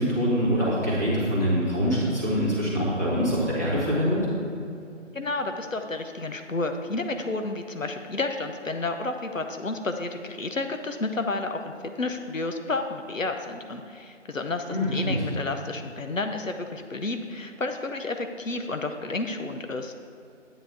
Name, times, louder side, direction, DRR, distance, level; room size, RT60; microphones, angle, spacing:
voice 1, 0.0-4.2 14.7-15.1, equal, 15° left, -12 dB, 1.9 m, -24 dB
voice 2, 5.1-19.9, left 2 dB, 85° left, 6 dB, 0.9 m, -31 dB
11.0 x 9.8 x 3.6 m, 2.6 s
figure-of-eight pair, 170°, 38 cm